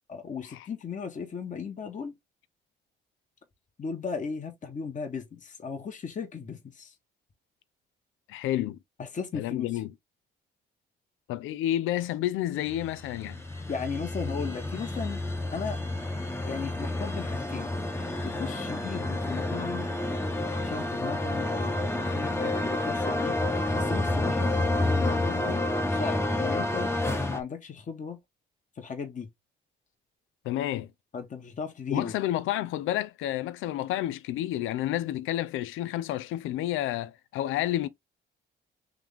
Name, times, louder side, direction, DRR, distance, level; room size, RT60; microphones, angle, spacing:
voice 1, 0.1-2.1 3.8-6.9 9.0-9.8 13.7-15.2 15.5-15.8 16.5-17.7 18.2-19.9 20.6-24.5 24.9-25.6 25.9-26.9 27.3-28.2 28.8-29.3 31.1-32.1, left 5 dB, 40° left, 1.3 m, -36 dB
voice 2, 8.3-8.8 9.3-9.9 11.3-13.4 30.4-30.9 31.9-37.9, left 13 dB, 90° left, 0.5 m, -30 dB
sound 1, 12.7-27.4, left 2 dB, 10° left, 0.9 m, -29 dB
3.7 x 3.1 x 3.6 m
cardioid pair, 90°, 20 cm